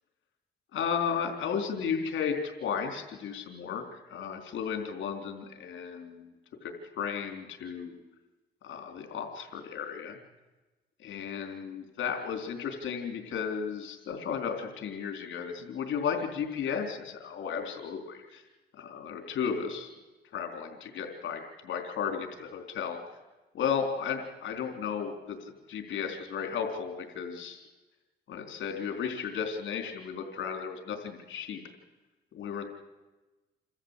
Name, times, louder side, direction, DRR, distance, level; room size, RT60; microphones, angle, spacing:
voice 1, 0.7-6.3 6.6-8.0 8.6-10.2 11.0-18.4 18.8-19.9 20.3-23.0 23.5-25.4 25.7-27.6 28.3-31.6 32.3-32.6, left 7 dB, 70° left, 4 dB, 3.9 m, -34 dB
28.0 x 14.0 x 8.2 m, 1.1 s
cardioid pair, 90°, 20 cm